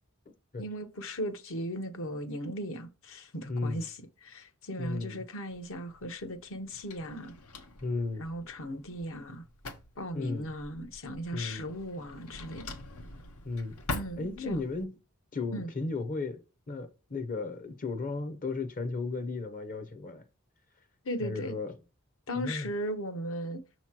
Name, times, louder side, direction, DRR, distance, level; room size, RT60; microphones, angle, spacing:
voice 1, 0.6-7.3 8.2-9.4 10.0-12.6 13.9-14.6 15.5-15.7 21.0-21.6 22.3-23.6, equal, 65° left, 0.9 m, -37 dB
voice 2, 3.5-3.9 4.8-5.2 7.8-8.3 10.1-10.5 11.3-11.7 13.4-13.8 14.2-14.9 15.3-16.4 16.7-20.2 21.2-21.7 22.4-22.7, left 3 dB, 40° left, 0.7 m, -34 dB
Drawer open or close, 5.5-14.8, left 2 dB, 90° left, 0.9 m, -44 dB
6.5 x 3.0 x 5.8 m
head